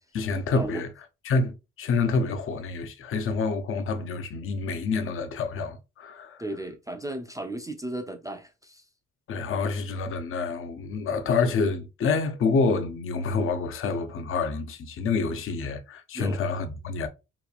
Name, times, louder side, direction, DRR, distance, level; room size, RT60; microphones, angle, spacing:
voice 1, 0.1-0.9 1.3-6.4 9.3-17.1, left 4 dB, 45° left, 0.5 m, -27 dB
voice 2, 6.4-8.8 16.1-16.4, right 1 dB, 10° right, 0.3 m, -35 dB
2.9 x 2.3 x 2.3 m
cardioid pair, 90°, 30 cm